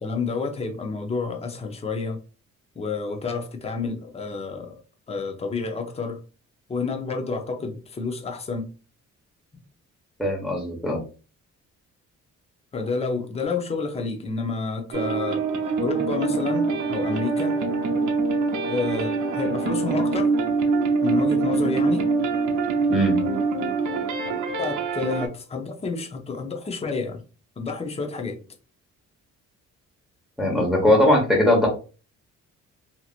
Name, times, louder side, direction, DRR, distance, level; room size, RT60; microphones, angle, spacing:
voice 1, 0.0-2.2 2.8-4.8 5.1-6.2 6.7-8.7 12.7-15.4 15.8-17.6 18.7-20.4 21.0-22.1 24.6-27.2 27.6-28.4, left 4 dB, 20° left, 0.6 m, -29 dB
voice 2, 10.2-11.0 22.9-23.2 30.4-31.7, left 1 dB, ahead, 1.2 m, -20 dB
sound 1, 14.9-25.3, right 4 dB, 80° right, 0.7 m, -24 dB
2.8 x 2.8 x 2.4 m
cardioid pair, 90°, 30 cm